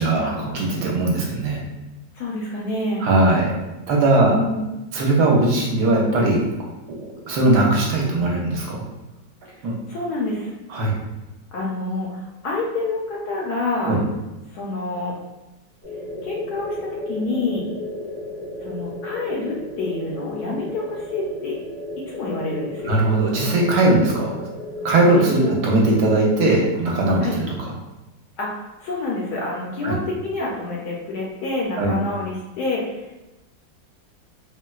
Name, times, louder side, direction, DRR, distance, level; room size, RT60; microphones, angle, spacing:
voice 1, 0.0-1.7 3.0-3.5 3.9-4.4 4.9-6.4 6.9-7.0 7.3-8.8 9.6-9.7 10.7-11.0 13.8-14.0 22.9-24.3 24.8-27.5 29.8-30.0 31.8-32.0, right 2 dB, 70° right, -2 dB, 1.2 m, -19 dB
voice 2, 2.1-3.1 4.2-4.7 9.5-9.6 9.9-10.5 11.5-13.9 14.5-15.2 16.2-17.7 18.6-21.6 22.1-23.0 25.1-25.6 27.2-27.4 28.4-33.1, left 2 dB, 70° left, -3 dB, 1.0 m, -28 dB
sound 1, 15.8-25.7, left 1 dB, 10° left, 0.7 m, -34 dB
4.2 x 2.1 x 2.3 m, 1.0 s
omnidirectional pair, 2.0 m